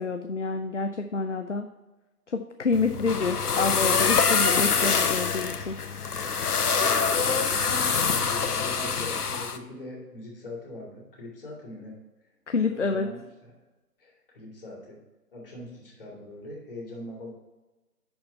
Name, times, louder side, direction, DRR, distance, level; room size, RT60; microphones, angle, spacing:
voice 1, 0.0-1.7 2.3-5.8 12.5-13.1, left 4 dB, 50° left, 7 dB, 0.5 m, -28 dB
sound 1, 2.7-9.6, left 5 dB, 70° left, 0.8 m, -25 dB
voice 2, 6.8-12.0 12.6-13.5 14.0-15.0 15.3-17.3, left 1 dB, 35° left, -3 dB, 2.5 m, -41 dB
10.5 x 4.4 x 4.4 m, 1.1 s
figure-of-eight pair, 155°, 48 cm